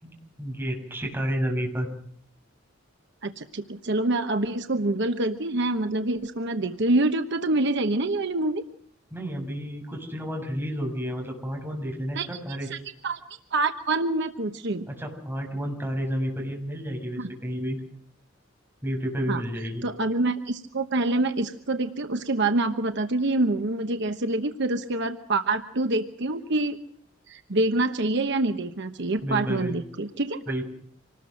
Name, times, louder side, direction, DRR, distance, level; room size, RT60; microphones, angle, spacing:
voice 1, 0.0-1.9 9.1-12.7 14.9-17.8 18.8-19.8 29.2-29.8 30.5-30.6, equal, 10° right, 0 dB, 6.8 m, -31 dB
voice 2, 3.2-8.6 12.1-12.3 12.7-12.8 13.0-13.2 13.5-14.9 17.2-17.3 19.3-19.4 19.8-26.8 27.3-30.4, right 2 dB, 60° right, 7 dB, 1.1 m, -26 dB
26.5 x 19.5 x 6.5 m, 0.62 s
head